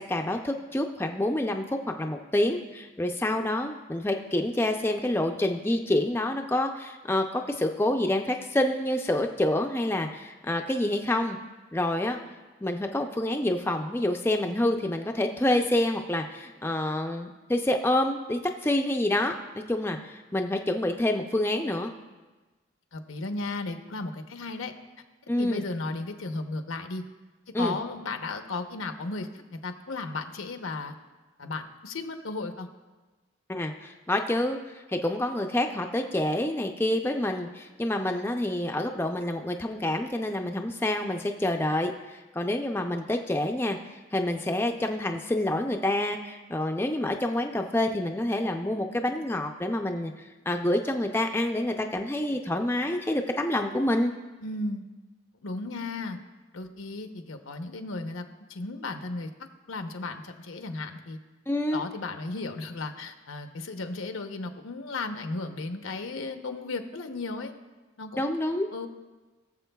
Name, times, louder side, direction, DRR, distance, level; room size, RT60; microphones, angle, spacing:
voice 1, 0.0-11.4 11.7-12.2 12.6-21.9 25.3-25.6 27.5-27.7 33.5-34.6 34.9-43.8 44.1-54.1 61.5-61.8 68.2-68.7, left 1 dB, 10° left, 3 dB, 0.4 m, -27 dB
voice 2, 22.9-24.7 25.4-27.0 27.6-30.9 31.4-32.7 54.4-54.9 55.4-56.2 56.5-58.2 58.5-59.3 59.7-61.2 61.7-67.5 68.0-68.3 68.7-68.9, left 3 dB, 85° left, 6 dB, 0.8 m, -35 dB
20.5 x 7.2 x 2.3 m, 1.2 s
head